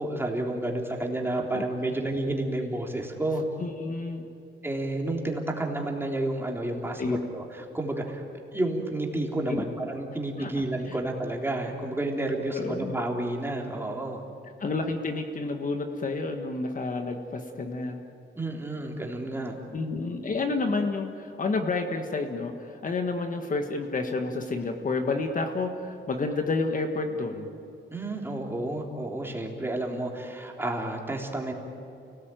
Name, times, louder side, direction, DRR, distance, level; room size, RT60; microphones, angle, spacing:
voice 1, 0.0-3.4 4.6-7.0 7.3-8.2 8.5-14.2 18.3-19.6 27.9-31.5, right 1 dB, 10° right, 0 dB, 3.4 m, -30 dB
voice 2, 3.6-4.3 7.0-7.2 9.5-9.6 10.4-10.5 10.8-11.0 12.5-12.9 14.6-18.0 19.7-27.5, left 3 dB, 40° left, 5 dB, 1.7 m, -30 dB
29.5 x 19.0 x 9.2 m, 2.9 s
wide cardioid pair, 140°, 20 cm